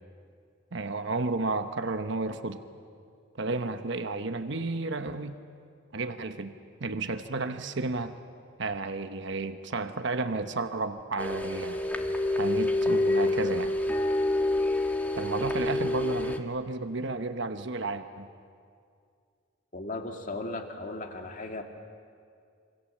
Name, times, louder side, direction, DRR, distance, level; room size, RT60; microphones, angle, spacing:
voice 1, 0.7-2.6 3.4-5.4 5.9-6.5 6.8-8.2 8.6-11.8 12.4-13.7 15.1-18.3, right 3 dB, 65° right, 8 dB, 1.1 m, -32 dB
sound 1, 11.2-16.4, left 2 dB, 10° left, 1.4 m, -27 dB
voice 2, 19.7-21.6, left 2 dB, 40° left, 3 dB, 2.3 m, -36 dB
27.0 x 26.0 x 7.4 m, 2.3 s
head